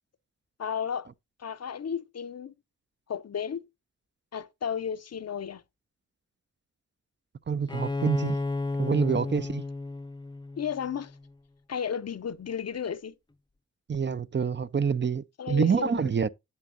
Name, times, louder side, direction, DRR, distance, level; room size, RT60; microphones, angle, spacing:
voice 1, 0.6-1.1 1.4-2.5 3.1-3.7 4.3-5.6 10.6-11.1 11.7-13.1 15.4-16.1, left 7 dB, 60° left, 0.6 m, -33 dB
voice 2, 7.5-8.4 8.8-9.6 13.9-16.3, right 6 dB, 40° right, 0.5 m, -27 dB
Bowed string instrument, 7.7-11.3, left 2 dB, 15° left, 0.6 m, -33 dB
9.6 x 8.4 x 2.6 m
cardioid pair, 50°, 29 cm